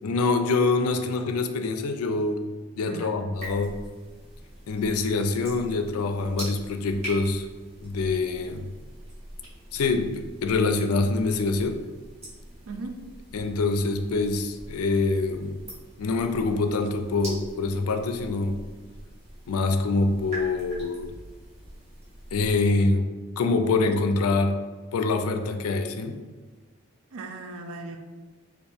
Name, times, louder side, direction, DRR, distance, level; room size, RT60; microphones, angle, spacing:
voice 1, 0.0-2.4 2.8-3.8 4.7-7.5 7.8-8.7 9.7-11.8 13.3-15.6 16.0-18.6 19.5-21.1 22.3-23.1 23.4-24.6 24.9-26.2, left 3 dB, 85° left, 7 dB, 0.4 m, -25 dB
voice 2, 2.8-3.2 12.7-13.0 27.1-28.0, right 3 dB, 75° right, 5 dB, 0.5 m, -37 dB
sound 1, 3.3-22.9, right 1 dB, 30° right, 1.5 m, -43 dB
4.4 x 2.5 x 3.4 m, 1.4 s
head